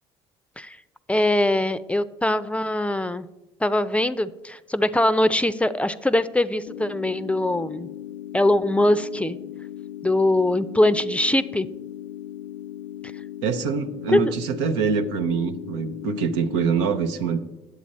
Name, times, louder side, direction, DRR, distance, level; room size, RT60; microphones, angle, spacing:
voice 1, 1.1-3.3 3.6-7.9 8.3-9.4 10.0-11.7 14.1-14.2, left 1 dB, 10° left, 14 dB, 0.5 m, -22 dB
sound 1, 6.7-16.7, left 12 dB, 85° left, 0.4 m, -38 dB
voice 2, 13.4-17.4, right 6 dB, 85° right, 8 dB, 0.7 m, -24 dB
9.3 x 7.8 x 4.2 m, 0.99 s
hypercardioid pair, 65°, 14 cm